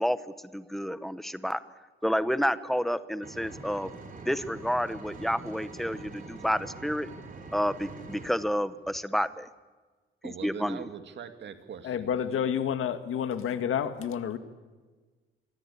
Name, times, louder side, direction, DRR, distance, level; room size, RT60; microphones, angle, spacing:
voice 1, 0.0-1.6 2.0-3.9 4.2-7.1 7.5-9.5 10.2-10.9, equal, ahead, 13 dB, 0.9 m, -30 dB
Engine, 3.2-8.3, right 3 dB, 40° right, 3.9 m, -44 dB
voice 2, 10.2-12.1, right 7 dB, 60° right, 8 dB, 2.3 m, -42 dB
voice 3, 11.8-14.4, left 8 dB, 85° left, 10 dB, 1.9 m, -29 dB
27.0 x 23.5 x 8.5 m, 1.3 s
wide cardioid pair, 180°, 21 cm